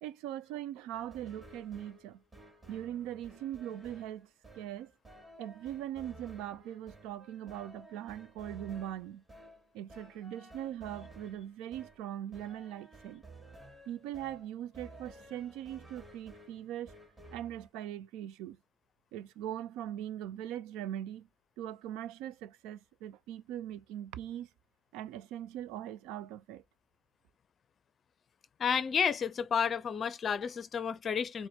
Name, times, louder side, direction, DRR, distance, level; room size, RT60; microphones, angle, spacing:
voice 1, 0.0-2.2 2.7-4.3 4.5-4.9 5.4-9.2 9.7-13.2 13.9-16.9 17.3-18.6 19.1-21.3 21.6-24.5 24.9-26.6, right 11 dB, 65° right, 0.3 m, -41 dB
sound 1, 0.9-17.7, right 1 dB, 25° right, 2.2 m, -54 dB
voice 2, 28.6-31.5, left 7 dB, 40° left, 0.5 m, -31 dB
4.1 x 2.1 x 3.0 m
figure-of-eight pair, 55°, 0 cm